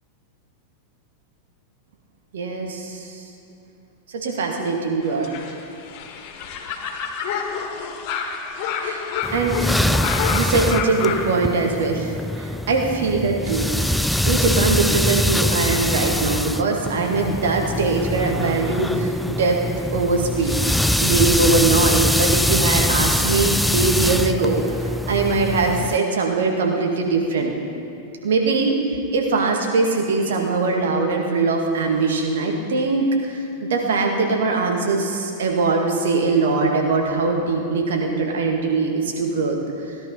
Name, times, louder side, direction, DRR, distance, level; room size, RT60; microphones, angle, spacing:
voice 1, 2.3-3.2 4.1-5.3 8.8-9.6 9.9-13.7 14.2-19.6 19.9-20.6 21.0-27.6 28.2-28.8 29.1-39.6, right 3 dB, 60° right, 1 dB, 2.0 m, -21 dB
sound 1, 5.0-11.3, left 6 dB, 40° left, 1.7 m, -28 dB
sound 2, 9.2-26.0, left 1 dB, ahead, 0.3 m, -23 dB
17.0 x 11.5 x 5.7 m, 2.6 s
figure-of-eight pair, 90°, 0 cm